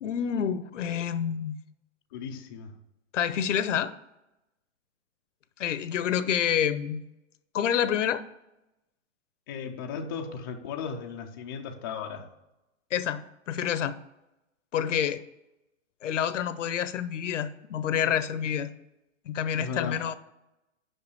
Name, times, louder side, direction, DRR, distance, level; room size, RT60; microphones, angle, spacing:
voice 1, 0.0-1.6 3.1-3.9 5.6-7.0 7.5-8.2 12.9-14.0 14.7-15.2 16.0-18.7 19.3-20.1, left 9 dB, 80° left, 14 dB, 0.7 m, -28 dB
voice 2, 2.1-2.8 9.5-12.3 19.6-20.0, left 6 dB, 20° left, 2 dB, 0.4 m, -36 dB
5.6 x 5.5 x 6.7 m, 0.91 s
hypercardioid pair, 150°, 36 cm